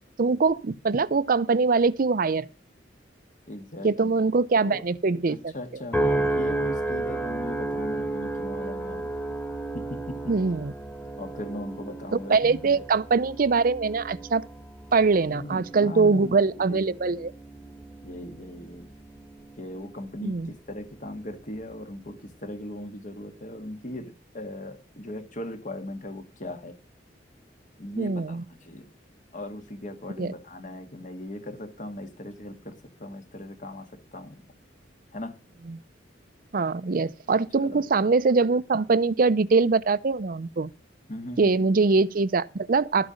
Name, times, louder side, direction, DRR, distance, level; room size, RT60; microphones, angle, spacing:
voice 1, 0.2-2.5 3.8-5.5 10.3-10.7 12.1-14.4 14.9-17.3 20.2-20.5 28.0-28.4 30.2-30.3 35.7-35.8 36.5-40.7 41.4-43.1, right 4 dB, 50° right, 0.5 m, -23 dB
voice 2, 3.5-4.1 4.6-4.8 5.3-9.2 9.7-10.4 11.2-12.9 15.3-16.9 18.0-18.9 19.6-26.8 27.8-28.9 29.3-34.4 35.1-35.4 37.6-37.8 41.1-41.6, left 1 dB, 45° left, 1.9 m, -38 dB
sound 1, 5.9-20.4 20.9-21.4, right 2 dB, 10° left, 2.0 m, -33 dB
13.0 x 8.8 x 5.1 m
head